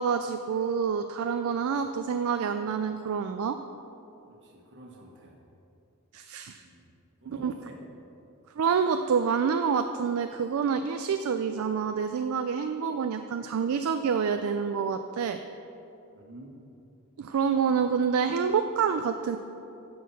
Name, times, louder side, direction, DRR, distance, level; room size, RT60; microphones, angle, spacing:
voice 1, 0.0-3.6 6.1-6.6 7.3-7.5 8.6-15.4 17.2-19.4, right 6 dB, 70° right, 8 dB, 0.4 m, -27 dB
voice 2, 4.3-5.4 6.6-6.9 7.2-7.8 16.1-16.6, right 1 dB, 55° right, 0 dB, 1.4 m, -49 dB
9.7 x 4.7 x 7.0 m, 2.8 s
head